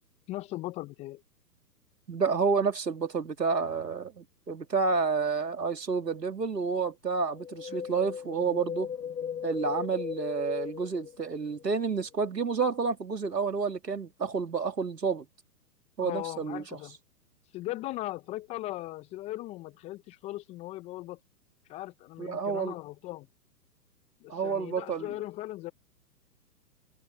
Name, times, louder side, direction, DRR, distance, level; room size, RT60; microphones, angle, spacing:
voice 1, 0.3-1.2 7.7-7.9 9.2-9.5 16.0-17.0 17.5-21.2 21.7-23.3 24.2-25.7, left 17 dB, 15° left, 0.6 m, -38 dB
voice 2, 2.1-8.9 9.4-15.3 16.0-16.6 22.2-22.7 24.3-25.1, right 5 dB, 85° right, 3.0 m, -29 dB
Wind, 7.3-11.7 11.9-12.0, left 8 dB, 90° left, 1.3 m, -37 dB
figure-of-eight pair, 125°, 49 cm